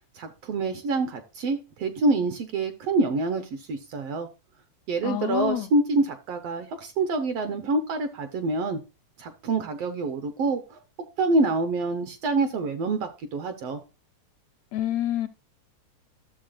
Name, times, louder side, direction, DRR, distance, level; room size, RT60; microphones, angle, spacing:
voice 1, 0.1-4.3 4.9-8.8 9.2-10.8 11.2-13.8, right 3 dB, 70° right, 1.5 m, -26 dB
voice 2, 5.0-5.7 14.7-15.3, left 11 dB, 80° left, 1.6 m, -27 dB
12.5 x 7.1 x 2.4 m
omnidirectional pair, 3.5 m